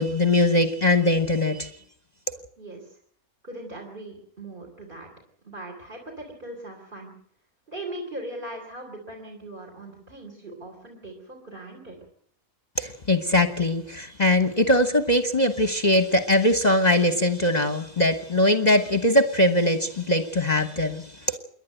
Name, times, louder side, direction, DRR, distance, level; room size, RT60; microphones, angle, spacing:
voice 1, 0.0-1.7 12.8-21.4, left 1 dB, 30° left, 9 dB, 1.2 m, -21 dB
voice 2, 2.6-3.0 3.4-5.1 5.4-7.1 7.7-12.0, right 1 dB, 35° right, 2 dB, 3.7 m, -39 dB
28.0 x 11.5 x 9.0 m, 0.63 s
omnidirectional pair, 1.5 m